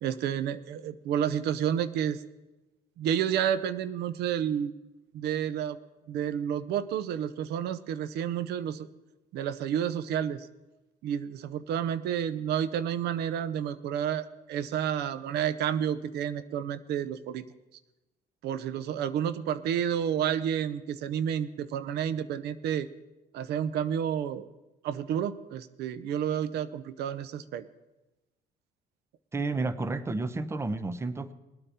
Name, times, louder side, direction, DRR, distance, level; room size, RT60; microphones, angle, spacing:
voice 1, 0.0-2.2 3.0-4.7 5.1-5.8 6.1-8.9 9.3-10.5 11.0-17.4 18.4-22.9 23.3-24.5 24.8-27.6, right 9 dB, 75° right, 15 dB, 0.7 m, -30 dB
voice 2, 29.3-31.3, right 3 dB, 15° right, 14 dB, 0.7 m, -31 dB
20.0 x 8.9 x 4.3 m, 1.0 s
cardioid pair, 110°, 17 cm